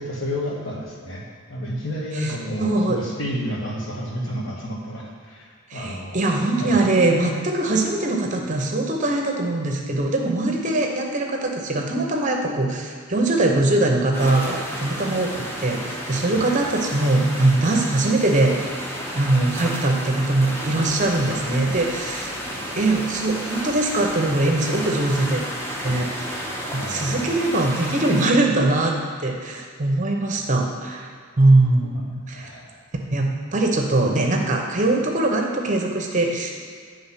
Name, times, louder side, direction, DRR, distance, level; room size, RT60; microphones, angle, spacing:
voice 1, 0.0-6.3 6.6-6.8 16.3-16.6 26.7-27.4 31.8-32.1 32.3-32.8, equal, 65° left, -2 dB, 1.5 m, -31 dB
voice 2, 2.6-3.0 5.7-18.7 19.1-22.3 22.8-25.4 25.8-26.4 26.7-29.0 29.2-31.1 31.4-32.5 33.1-36.5, right 2 dB, 40° right, 1 dB, 0.8 m, -21 dB
sound 1, 14.1-28.3, equal, 10° left, 0.8 m, -32 dB
9.7 x 3.4 x 5.7 m, 2.1 s
head